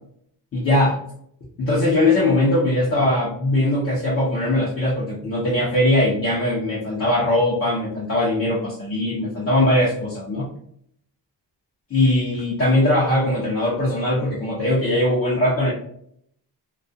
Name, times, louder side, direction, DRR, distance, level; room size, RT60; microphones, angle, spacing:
voice 1, 0.5-1.0 1.6-10.5 11.9-15.7, left 1 dB, 35° left, -7 dB, 0.6 m, -20 dB
2.3 x 2.2 x 2.5 m, 0.68 s
cardioid pair, 165°, 43 cm